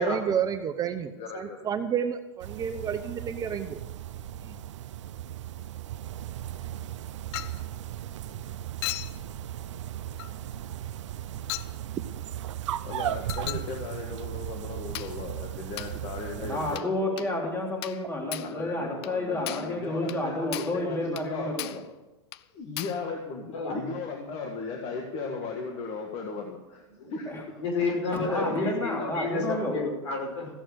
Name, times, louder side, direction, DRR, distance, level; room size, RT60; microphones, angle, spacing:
voice 1, 0.0-3.8 4.4-4.6, right 8 dB, 25° right, 9 dB, 0.7 m, -30 dB
voice 2, 1.2-1.6 12.8-17.3 18.4-21.5 22.5-26.8 27.1-27.3 28.4-28.6, left 4 dB, 40° left, 2 dB, 1.7 m, -36 dB
sound 1, 2.4-16.8, right 11 dB, 85° right, 0.5 m, -37 dB
Chink clink, 7.3-7.6 8.8-9.2 10.2-10.4 11.5-11.8 13.3-13.7 14.9-15.2 15.8-16.0 16.8-16.9 17.2-17.3 17.8-18.0 18.3-18.6 19.0-19.2 19.5-19.7 20.1-20.2 20.5-20.8 21.2-21.3 21.6-21.9 22.3-22.4 22.8-23.0, left 16 dB, 60° left, 0.5 m, -36 dB
voice 3, 16.3-21.8 27.2-27.5 28.1-29.8, left 1 dB, 15° left, -1 dB, 3.4 m, -30 dB
voice 4, 27.6-30.5, left 3 dB, 80° left, 1 dB, 5.3 m, -30 dB
15.0 x 7.6 x 6.6 m, 1.0 s
supercardioid pair, 130°, 15 cm